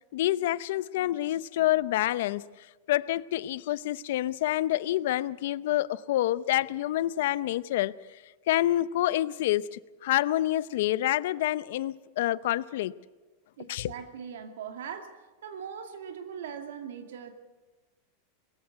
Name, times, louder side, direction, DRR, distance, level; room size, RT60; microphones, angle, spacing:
voice 1, 0.1-13.0 13.7-13.9, left 14 dB, 70° left, 0.6 m, -28 dB
voice 2, 13.6-15.1 15.4-17.3, right 7 dB, 90° right, 2.4 m, -40 dB
22.0 x 14.5 x 8.1 m
supercardioid pair, 145°, 0 cm